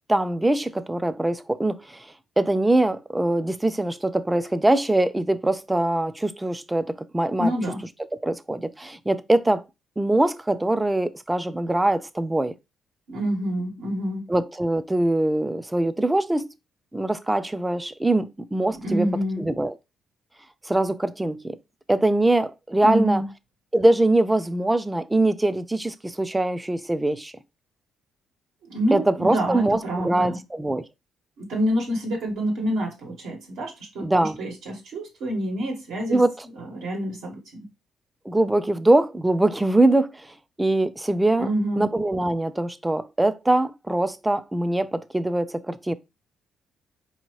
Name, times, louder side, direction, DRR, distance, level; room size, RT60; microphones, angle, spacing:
voice 1, 0.1-2.1 2.4-7.5 8.1-9.6 10.0-12.5 14.3-16.5 16.9-19.1 19.4-19.8 20.6-21.6 21.9-23.2 23.7-27.3 28.9-30.9 34.0-34.4 36.1-36.3 38.3-41.5 41.8-45.9, right 2 dB, 10° right, 0.3 m, -23 dB
voice 2, 7.4-7.8 13.1-14.3 18.8-19.4 22.8-23.2 28.7-30.4 31.4-36.2 36.6-37.6 41.4-41.8, equal, 85° right, 1.4 m, -27 dB
4.5 x 2.8 x 3.0 m
cardioid pair, 90°, 0 cm